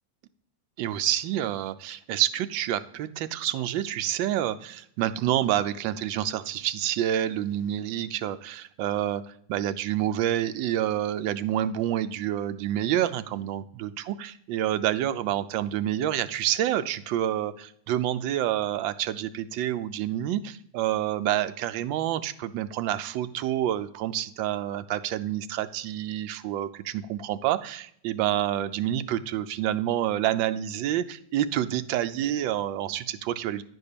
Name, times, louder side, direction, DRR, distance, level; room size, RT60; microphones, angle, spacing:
voice 1, 0.8-9.2 9.5-33.6, right 12 dB, 90° right, 12 dB, 1.4 m, -28 dB
10.5 x 4.4 x 6.7 m, 0.66 s
omnidirectional pair, 2.0 m